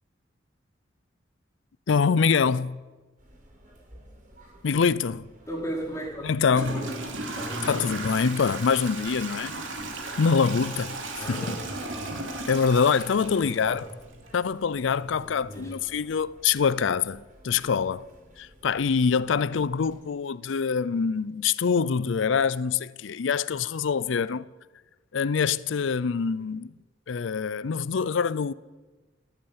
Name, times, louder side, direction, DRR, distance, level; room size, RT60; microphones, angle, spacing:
voice 1, 1.9-2.8 4.6-5.3 6.2-6.8 7.7-9.5 10.2-11.0 11.3-11.6 12.5-13.8 14.3-18.1 18.4-24.4 25.1-26.7 27.1-28.5, left 6 dB, 70° left, 0.5 m, -25 dB
sound 1, 3.2-20.0, right 1 dB, 45° right, 5.2 m, -53 dB
voice 2, 5.5-7.0 7.3-7.7 11.2-11.6 13.2-13.9 15.2-15.8, equal, 15° left, 4.0 m, -36 dB
Toilet flush / Trickle dribble, 5.7-5.8 6.5-14.3, right 2 dB, 80° right, 2.8 m, -36 dB
17.0 x 8.8 x 9.6 m
head